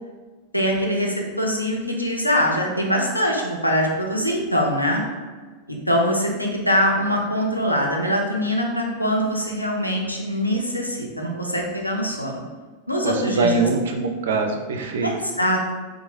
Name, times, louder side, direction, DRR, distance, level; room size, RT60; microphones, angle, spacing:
voice 1, 0.5-5.0 5.7-12.4 12.9-13.6 15.0-15.6, equal, 90° left, 0 dB, 0.4 m, -23 dB
voice 2, 13.0-15.1, right 3 dB, 60° right, 4 dB, 0.3 m, -23 dB
2.9 x 2.1 x 2.9 m, 1.4 s
figure-of-eight pair, 90°, 0 cm